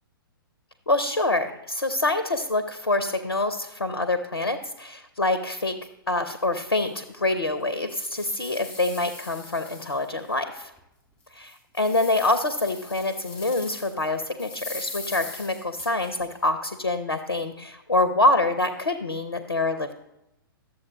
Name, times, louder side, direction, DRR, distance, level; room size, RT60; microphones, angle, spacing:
voice 1, 0.9-5.7 6.1-10.7 11.3-19.9, left 2 dB, 80° left, 10 dB, 0.7 m, -26 dB
sound 1, 6.9-7.0 7.5-10.3 10.8-10.9 11.4-14.1 14.4-16.3, left 3 dB, 10° left, 3.1 m, -41 dB
12.0 x 7.6 x 3.0 m, 0.88 s
figure-of-eight pair, 115°, 12 cm